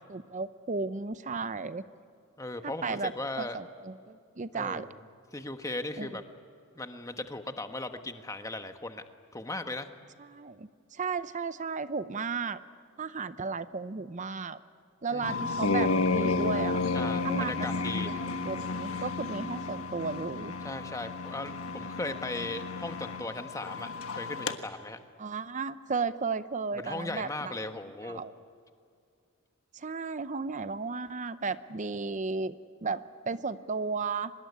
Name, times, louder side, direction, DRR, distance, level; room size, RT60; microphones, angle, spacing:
voice 1, 0.1-1.8 2.6-3.1 3.4-4.9 6.0-6.2 10.2-12.6 13.0-14.6 15.0-16.8 17.2-17.7 18.0-20.5 25.2-27.5 28.0-28.3 29.7-34.3, right 4 dB, 35° right, 13 dB, 0.6 m, -34 dB
voice 2, 2.4-3.6 4.5-4.9 5.3-6.2 6.7-9.0 9.3-9.9 15.1-15.5 16.9-18.1 20.6-23.9 24.2-25.0 26.7-28.2, left 2 dB, 15° left, 7 dB, 1.2 m, -37 dB
sound 1, 15.2-24.5, left 3 dB, 75° left, 1.4 m, -32 dB
24.5 x 21.0 x 9.8 m, 2.3 s
head